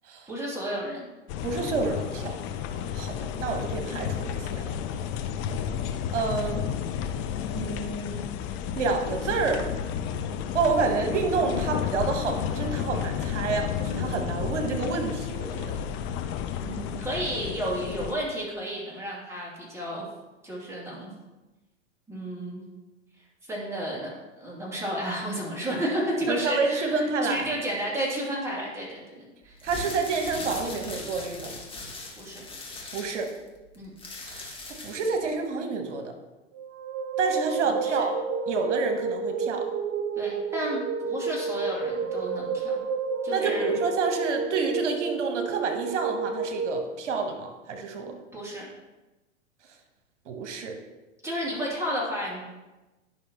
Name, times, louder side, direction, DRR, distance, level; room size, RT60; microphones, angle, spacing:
voice 1, 0.3-1.1 16.6-20.0 20.4-21.1 22.1-22.6 23.5-29.6 32.2-32.4 33.7-33.9 37.8-38.0 40.2-42.8 43.2-43.8 48.3-48.7 51.2-52.4, equal, 5° right, -5 dB, 2.7 m, -32 dB
sound 1, 1.3-18.2, left 8 dB, 30° left, 0.5 m, -32 dB
voice 2, 1.4-2.4 2.9-4.7 6.1-6.7 7.5-8.3 8.8-9.7 10.5-15.8 26.3-27.5 29.6-31.5 32.9-33.3 34.2-36.1 37.2-38.1 38.5-39.7 43.3-48.2 50.3-50.8, right 4 dB, 70° right, 4 dB, 1.3 m, -29 dB
sound 2, 29.5-35.2, left 3 dB, 15° left, 1.7 m, -39 dB
sound 3, 36.5-46.8, right 5 dB, 50° right, 0.8 m, -30 dB
10.5 x 5.8 x 3.0 m, 1.1 s
hypercardioid pair, 100°, 37 cm